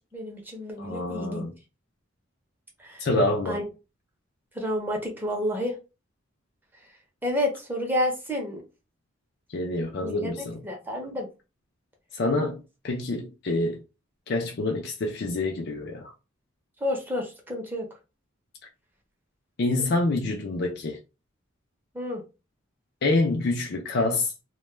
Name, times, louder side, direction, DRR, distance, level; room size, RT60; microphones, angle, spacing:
voice 1, 0.1-1.5 2.8-3.1 3.5-3.6 4.5-5.7 7.2-8.6 10.0-11.3 16.8-17.8 21.9-22.2, left 1 dB, 10° right, 0.6 m, -30 dB
voice 2, 0.8-1.5 3.0-3.6 9.5-10.6 12.1-13.8 14.3-16.1 19.6-21.0 23.0-24.3, left 2 dB, 55° left, 0.4 m, -27 dB
2.2 x 2.1 x 3.1 m
head